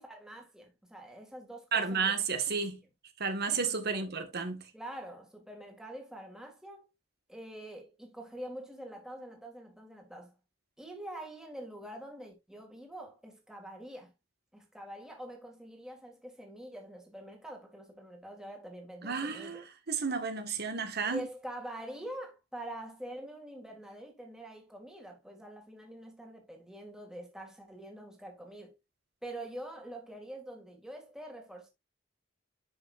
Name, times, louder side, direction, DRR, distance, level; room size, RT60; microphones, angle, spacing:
voice 1, 0.0-2.2 3.5-3.6 3.9-4.2 4.7-6.9 7.3-10.3 10.8-14.1 14.5-19.7 21.0-28.7 29.2-31.7, right 1 dB, 5° right, 2.2 m, -45 dB
voice 2, 1.7-2.8 3.2-4.6 19.0-21.2, right 5 dB, 55° right, 1.6 m, -32 dB
11.0 x 5.7 x 2.5 m
head